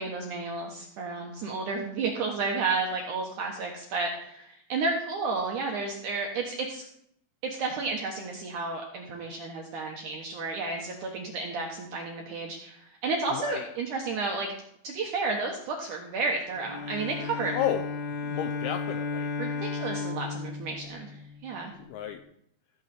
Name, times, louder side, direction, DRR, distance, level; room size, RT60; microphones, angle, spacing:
voice 1, 0.0-6.8 7.4-14.5 14.8-17.6 19.4-21.7, right 3 dB, 70° right, 1 dB, 2.0 m, -32 dB
voice 2, 13.3-13.7 17.5-17.9 18.2-19.3 21.8-22.2, left 10 dB, 85° left, 7 dB, 2.3 m, -32 dB
Bowed string instrument, 16.6-21.8, left 4 dB, 65° left, 3.7 m, -34 dB
14.5 x 8.0 x 4.3 m, 0.70 s
omnidirectional pair, 5.1 m